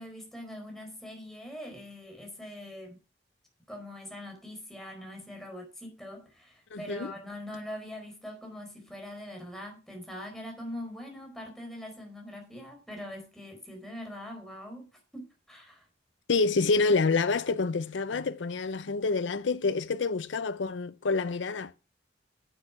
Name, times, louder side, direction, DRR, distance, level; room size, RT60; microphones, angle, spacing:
voice 1, 0.0-3.0 3.7-14.9 15.1-15.9, left 1 dB, ahead, 4.6 m, -42 dB
voice 2, 6.7-7.1 16.3-21.7, left 4 dB, 80° left, 0.6 m, -27 dB
10.0 x 8.5 x 5.8 m
head